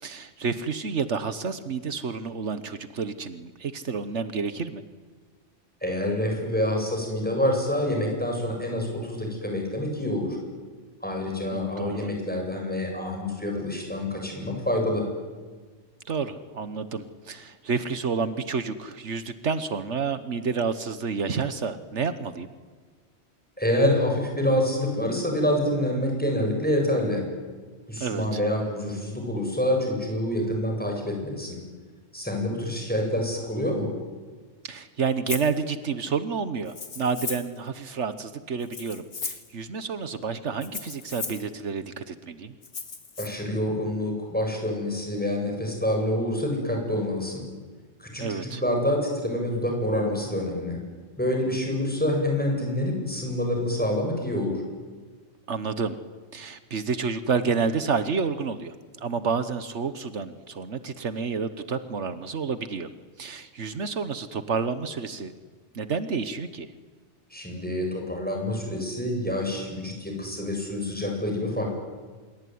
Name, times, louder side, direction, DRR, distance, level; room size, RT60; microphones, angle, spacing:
voice 1, 0.0-4.8 11.5-12.1 16.0-22.5 28.0-28.4 34.6-42.5 48.2-48.6 55.5-56.0 56.3-62.9 63.2-65.3 65.7-66.7, right 5 dB, 80° right, 11 dB, 1.5 m, -30 dB
voice 2, 5.8-10.4 11.0-15.0 23.6-27.2 27.9-31.6 32.1-33.9 43.2-47.4 48.0-50.8 51.2-54.6 67.3-71.7, left 1 dB, 10° left, 1 dB, 7.7 m, -27 dB
Rattle (instrument), 35.3-35.5 36.7-37.6 38.6-39.5 40.6-41.5 42.6-43.3, left 4 dB, 85° left, 2.3 m, -36 dB
27.0 x 22.5 x 9.5 m, 1.4 s
omnidirectional pair, 1.2 m